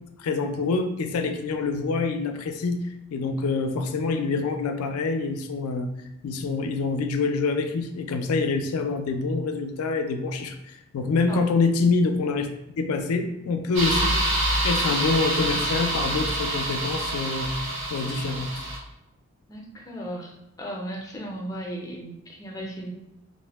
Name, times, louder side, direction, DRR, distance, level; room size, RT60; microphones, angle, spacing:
voice 1, 0.2-2.8 3.1-5.9 6.2-12.5 12.8-14.2 14.6-18.6, left 4 dB, 85° left, 6 dB, 0.4 m, -26 dB
sound 1, 13.8-18.8, right 1 dB, 60° right, 0.6 m, -26 dB
voice 2, 19.5-22.9, right 1 dB, 15° left, -1 dB, 0.4 m, -36 dB
2.5 x 2.0 x 3.3 m, 0.88 s
head